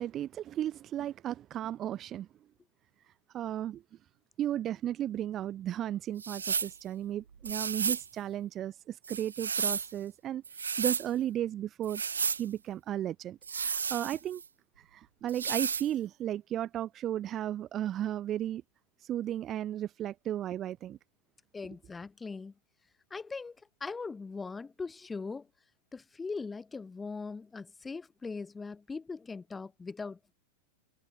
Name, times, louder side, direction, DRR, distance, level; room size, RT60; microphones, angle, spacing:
voice 1, 0.0-2.3 3.3-3.8 4.4-10.4 10.8-12.0 12.4-14.4 14.9-18.6 19.0-21.0, right 11 dB, 30° right, 1.0 m, -34 dB
sound 1, 6.2-6.8 7.4-8.1 9.0-9.9 10.4-11.1 11.8-12.4 13.4-14.5 15.3-15.9, right 6 dB, 70° right, 2.1 m, -32 dB
voice 2, 21.5-22.5 23.1-25.5 25.9-30.3, left 4 dB, 15° left, 2.5 m, -40 dB
figure-of-eight pair, 90°, 0 cm